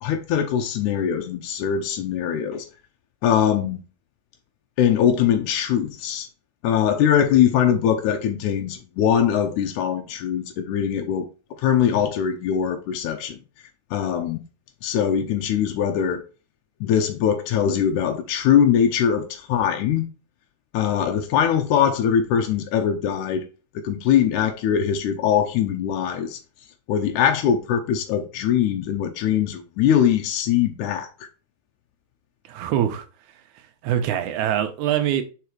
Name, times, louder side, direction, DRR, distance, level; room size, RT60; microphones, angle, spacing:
voice 1, 0.0-2.7 3.2-3.8 4.8-6.3 6.6-11.3 11.6-13.4 13.9-14.4 14.8-16.2 16.8-20.1 20.7-23.4 23.8-26.4 26.9-31.1, left 9 dB, 90° left, 2.2 m, -21 dB
voice 2, 32.5-33.1 33.8-35.2, right 10 dB, 85° right, 2.2 m, -23 dB
5.0 x 4.8 x 4.6 m
omnidirectional pair, 3.4 m